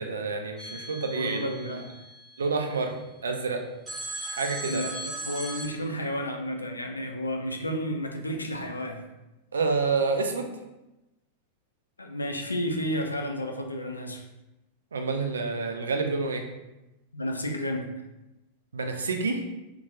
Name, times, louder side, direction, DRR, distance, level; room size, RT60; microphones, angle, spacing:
voice 1, 0.0-1.8 2.4-3.0 3.2-3.6 4.3-4.8 9.5-10.5 14.9-16.4 18.7-19.4, right 4 dB, 70° right, 4 dB, 0.3 m, -28 dB
sound 1, 0.6-2.8 3.9-5.7, right 1 dB, 5° right, 0.6 m, -38 dB
voice 2, 1.1-1.9 4.6-9.0 12.0-14.2 17.1-17.9, equal, 80° left, 3 dB, 0.3 m, -32 dB
2.8 x 2.1 x 3.0 m, 0.99 s
figure-of-eight pair, 90°, 0 cm